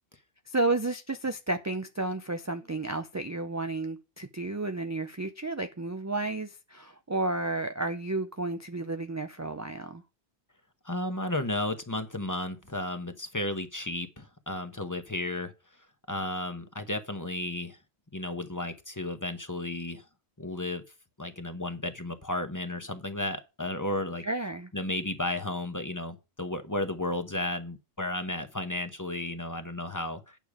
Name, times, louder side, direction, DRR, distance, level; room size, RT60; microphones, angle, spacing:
voice 1, 0.5-10.0 24.2-24.7, right 2 dB, 25° right, 0.3 m, -32 dB
voice 2, 10.8-15.5 16.1-17.8 18.1-20.1 20.4-20.8 21.2-24.2 24.7-30.4, left 1 dB, 20° left, 0.9 m, -33 dB
9.1 x 6.7 x 4.8 m
omnidirectional pair, 1.1 m